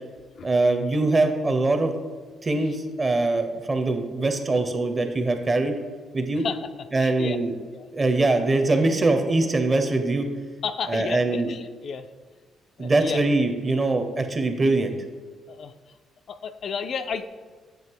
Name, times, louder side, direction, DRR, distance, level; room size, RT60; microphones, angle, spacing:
voice 1, 0.4-1.9 2.4-5.7 6.1-6.4 6.9-7.5 7.9-10.3 10.9-11.5 12.8-14.9, right 2 dB, 30° right, 7 dB, 0.7 m, -22 dB
voice 2, 6.4-6.7 7.0-7.4 7.7-7.9 10.6-12.1 12.8-13.2 15.5-15.7 16.3-17.3, left 6 dB, 60° left, 9 dB, 0.3 m, -32 dB
7.8 x 2.8 x 4.6 m, 1.4 s
cardioid pair, 90°, 0 cm